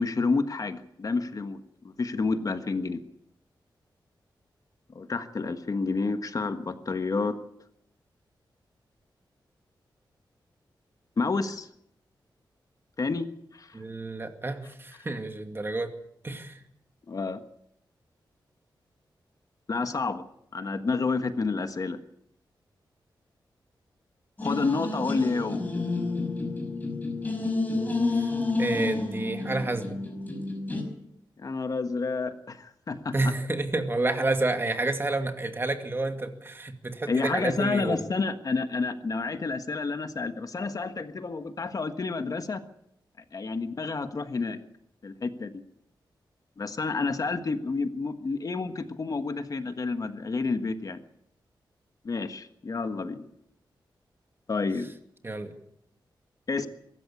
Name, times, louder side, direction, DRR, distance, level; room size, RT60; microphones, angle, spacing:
voice 1, 0.0-3.0 4.9-7.4 11.2-11.7 13.0-13.8 17.1-17.4 19.7-20.3 20.5-22.0 24.4-25.6 31.4-33.1 37.1-42.6 43.3-44.6 45.0-45.5 46.6-51.0 52.0-53.2 54.5-54.9 56.5-56.7, left 4 dB, 45° left, 9 dB, 1.4 m, -29 dB
voice 2, 13.7-15.9 16.2-16.6 28.1-28.3 28.6-30.0 33.1-38.0 55.2-55.6, right 2 dB, 30° right, 6 dB, 2.3 m, -29 dB
sound 1, 24.4-30.8, left 3 dB, 20° left, 5.5 m, -30 dB
23.0 x 13.5 x 8.5 m, 0.73 s
wide cardioid pair, 110°, 8 cm